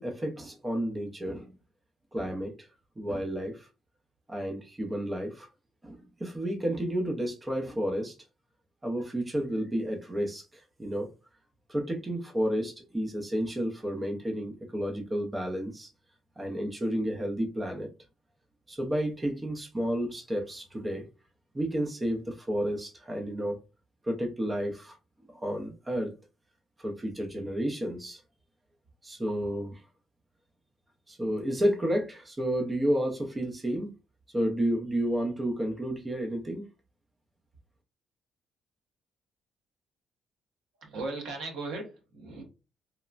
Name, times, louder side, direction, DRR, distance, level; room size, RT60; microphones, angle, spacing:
voice 1, 0.0-1.5 2.1-2.7 3.0-3.7 4.3-5.5 5.8-8.1 8.8-11.1 11.7-15.9 16.4-17.9 18.7-21.0 21.5-23.6 24.0-25.0 25.3-26.1 26.8-28.2 29.0-29.8 31.1-33.9 34.3-36.7, equal, 20° right, 0.6 m, -31 dB
voice 2, 40.8-42.4, right 3 dB, 80° right, 1.0 m, -37 dB
3.1 x 2.1 x 2.4 m
cardioid pair, 90°, 0 cm